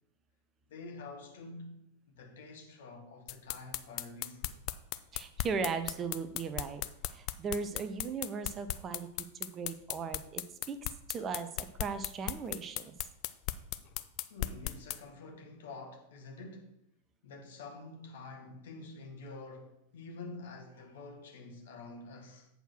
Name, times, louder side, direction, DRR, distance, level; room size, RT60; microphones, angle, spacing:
voice 1, 0.7-4.6 9.4-9.5 11.1-11.3 14.3-16.7 17.2-22.5, left 3 dB, 60° left, 1.5 m, -48 dB
sound 1, 3.3-15.0, left 16 dB, 40° left, 0.4 m, -36 dB
voice 2, 5.1-6.8 7.1-10.8 11.1-12.9, right 5 dB, 25° right, 0.6 m, -38 dB
8.0 x 4.5 x 6.3 m
figure-of-eight pair, 90°, 0 cm